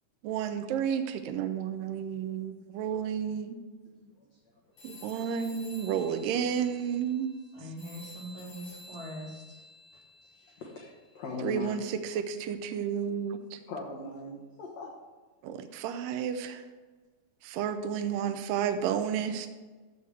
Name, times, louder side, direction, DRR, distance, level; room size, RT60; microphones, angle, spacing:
voice 1, 0.2-3.6 4.8-7.3 11.4-13.6 15.4-16.6 17.4-19.5, right 8 dB, 80° right, 7 dB, 2.0 m, -31 dB
sound 1, 4.8-10.9, left 2 dB, 45° left, 4.2 m, -51 dB
voice 2, 7.5-9.6, equal, 10° right, -6 dB, 1.9 m, -42 dB
voice 3, 10.3-11.8 13.7-14.9, left 3 dB, 60° left, -3 dB, 2.0 m, -40 dB
13.0 x 7.8 x 3.4 m, 1.3 s
omnidirectional pair, 4.5 m